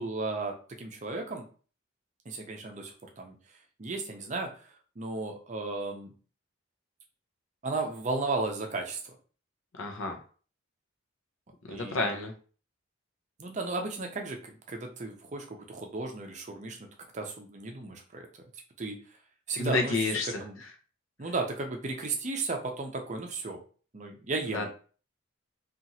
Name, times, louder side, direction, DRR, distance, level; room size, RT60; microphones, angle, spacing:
voice 1, 0.0-1.5 2.3-3.4 3.8-4.7 5.0-6.1 7.6-9.0 11.7-12.1 13.4-16.8 17.1-18.3 18.8-18.9 19.5-20.1 20.4-20.6 21.2-23.6 23.9-24.7, right 3 dB, 35° right, 3 dB, 0.5 m, -34 dB
voice 2, 9.8-10.2 11.7-12.3 19.6-20.3 24.5-24.7, left 3 dB, 65° left, 3 dB, 0.6 m, -29 dB
2.9 x 2.4 x 2.7 m, 0.39 s
head